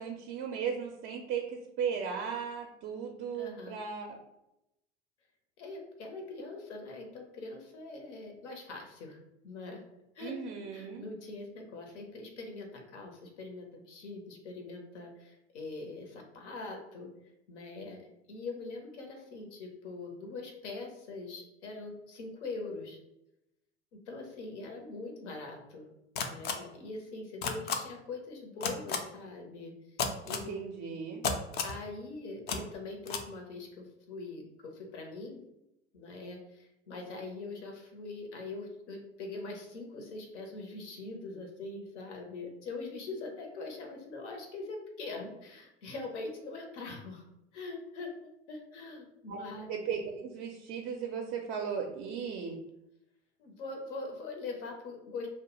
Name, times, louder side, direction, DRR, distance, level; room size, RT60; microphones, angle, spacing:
voice 1, 0.0-4.2 10.2-11.0 30.3-31.2 49.3-49.4 49.7-52.6, right 6 dB, 35° right, 2 dB, 0.4 m, -36 dB
voice 2, 3.4-3.8 5.6-9.2 9.4-9.8 10.1-10.3 10.7-17.1 17.5-23.0 23.9-25.9 26.2-30.5 31.6-35.4 35.9-47.2 47.5-48.1 48.5-49.7 53.4-55.3, left 3 dB, 75° left, 2 dB, 0.8 m, -43 dB
sound 1, 26.2-26.5 27.4-27.8 28.6-29.0 30.0-30.4 31.2-31.8 32.5-32.6 33.1-33.2, left 6 dB, 30° left, 0.4 m, -31 dB
2.2 x 2.1 x 2.9 m, 0.87 s
hypercardioid pair, 80°, 35 cm